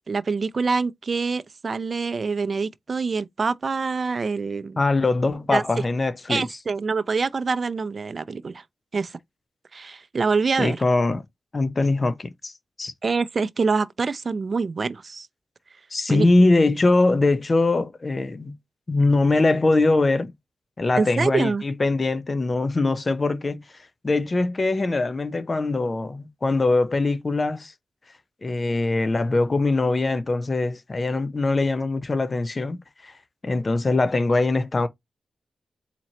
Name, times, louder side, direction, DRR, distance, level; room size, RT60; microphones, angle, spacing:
voice 1, 0.1-4.8 5.5-5.6 6.3-8.6 8.9-9.2 9.7-10.8 13.0-15.3 16.1-16.3 20.9-21.6, right 4 dB, 55° right, 0.5 m, -25 dB
voice 2, 4.8-6.5 10.6-11.2 11.5-12.5 12.8-12.9 15.9-18.5 18.9-20.3 20.8-23.6 24.0-27.7 28.4-33.1 33.4-34.9, left 2 dB, 45° left, 0.7 m, -22 dB
4.2 x 2.9 x 2.8 m
supercardioid pair, 45°, 0 cm